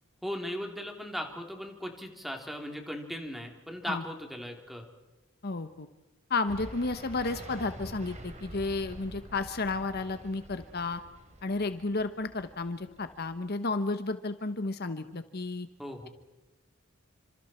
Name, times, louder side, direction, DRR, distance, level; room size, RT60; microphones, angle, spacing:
voice 1, 0.2-4.8 15.8-16.1, equal, ahead, 3 dB, 3.3 m, -38 dB
voice 2, 5.4-5.9 6.3-11.0 11.4-15.7, left 3 dB, 55° left, 10 dB, 1.1 m, -32 dB
sound 1, 6.5-13.5, right 1 dB, 35° right, 4.0 m, -47 dB
29.5 x 26.5 x 4.5 m, 1.1 s
head